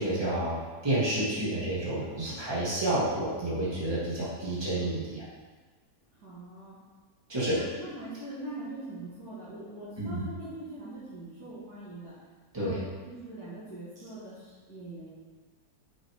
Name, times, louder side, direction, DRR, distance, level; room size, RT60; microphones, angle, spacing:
voice 1, 0.0-5.3 7.3-7.6 10.0-10.2 12.5-12.8, right 1 dB, 15° right, -9 dB, 2.3 m, -30 dB
voice 2, 6.1-6.8 7.5-12.1 12.5-12.8 13.0-15.1, right 1 dB, 65° right, -13 dB, 2.7 m, -42 dB
7.3 x 6.1 x 3.7 m, 1.4 s
omnidirectional pair, 1.7 m